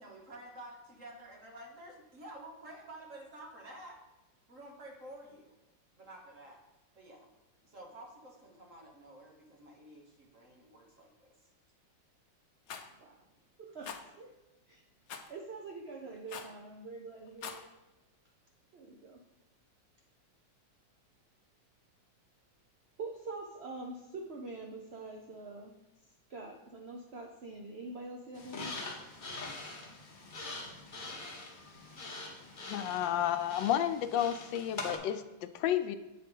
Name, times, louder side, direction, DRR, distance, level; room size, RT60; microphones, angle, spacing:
voice 1, 0.0-4.0 4.5-5.6 5.9-6.6 6.9-7.3 7.6-11.5, right 1 dB, 45° right, 0 dB, 1.6 m, -51 dB
Rattle, 12.7-12.9 13.8-14.0 15.1-15.3 16.3-16.6 17.3-17.6, left 7 dB, 65° left, 1.0 m, -43 dB
voice 2, 13.6-14.3 14.7-14.8 15.3-17.6 18.7-19.2 23.0-25.7 26.3-28.7, right 3 dB, 60° right, 2 dB, 0.6 m, -45 dB
sound 1, 28.3-35.0, left 3 dB, 35° left, 0.9 m, -44 dB
voice 3, 32.6-36.0, left 11 dB, 85° left, 10 dB, 1.3 m, -31 dB
8.1 x 4.2 x 5.3 m, 1.0 s
omnidirectional pair, 2.0 m